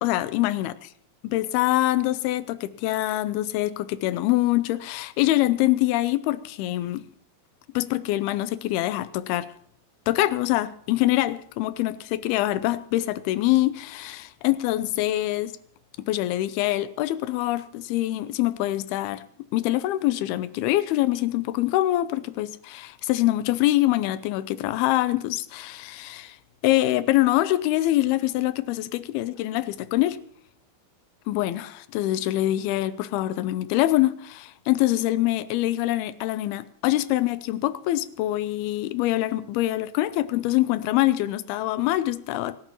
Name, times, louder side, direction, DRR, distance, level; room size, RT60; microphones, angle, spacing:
voice 1, 0.0-0.7 1.2-7.0 7.7-9.5 10.1-15.5 16.1-19.2 19.5-26.4 26.6-30.2 31.3-42.6, left 15 dB, 85° left, 15 dB, 2.6 m, -24 dB
26.0 x 11.5 x 3.0 m, 0.64 s
omnidirectional pair, 4.5 m